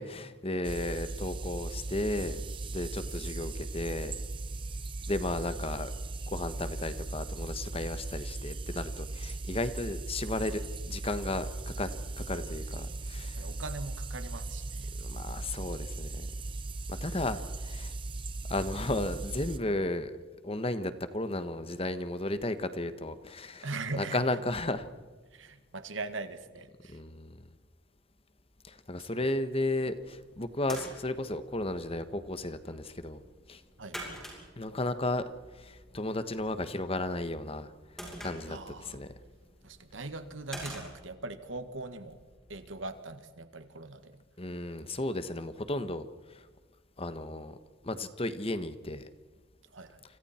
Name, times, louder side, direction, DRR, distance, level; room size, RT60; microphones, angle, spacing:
voice 1, 0.0-2.4 2.7-4.2 5.1-5.9 6.3-11.9 12.2-13.5 15.0-16.3 16.9-17.9 18.5-20.1 20.4-23.7 23.9-24.8 26.9-27.4 28.6-33.2 33.5-33.6 34.6-37.7 38.2-38.6 38.8-39.1 44.4-46.5 47.0-47.6 47.8-49.1, left 2 dB, 30° left, 11 dB, 1.3 m, -34 dB
sound 1, 0.6-19.6, right 2 dB, 25° right, 0.7 m, -38 dB
voice 2, 12.8-14.9 23.6-24.2 25.3-27.0 33.8-34.0 38.5-39.0 39.6-42.2 42.5-44.2 49.7-50.0, right 3 dB, 80° right, 9 dB, 1.9 m, -41 dB
sound 2, 29.9-42.9, equal, ahead, 7.1 m, -49 dB
29.5 x 25.5 x 4.5 m, 1.3 s
head